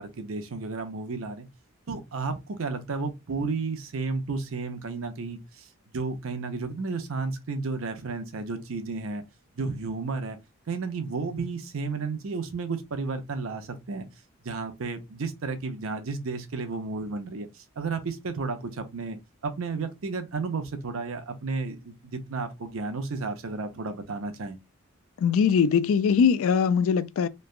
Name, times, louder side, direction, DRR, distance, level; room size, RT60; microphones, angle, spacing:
voice 1, 0.0-1.5 1.9-5.7 5.9-9.2 9.6-10.4 10.7-14.1 14.4-19.2 19.4-24.6, right 4 dB, 75° right, 0.6 m, -32 dB
voice 2, 25.2-27.3, left 6 dB, 70° left, 0.3 m, -21 dB
3.1 x 2.2 x 2.3 m
head